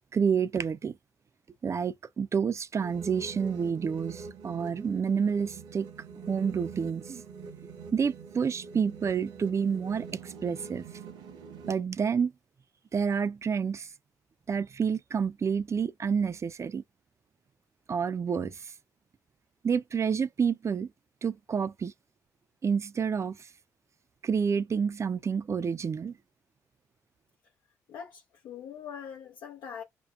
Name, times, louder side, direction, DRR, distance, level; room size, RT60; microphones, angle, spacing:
voice 1, 0.1-0.9 1.6-5.9 6.3-7.2 7.9-10.9 11.7-12.3 12.9-13.9 14.5-16.8 17.9-18.5 19.6-20.9 21.2-21.9 22.6-23.4 24.2-26.1, right 6 dB, 35° right, 0.4 m, -29 dB
sound 1, 2.8-11.8, right 5 dB, 70° right, 0.8 m, -45 dB
voice 2, 27.9-29.8, left 7 dB, 70° left, 0.7 m, -42 dB
5.2 x 2.1 x 2.4 m
hypercardioid pair, 40°, 8 cm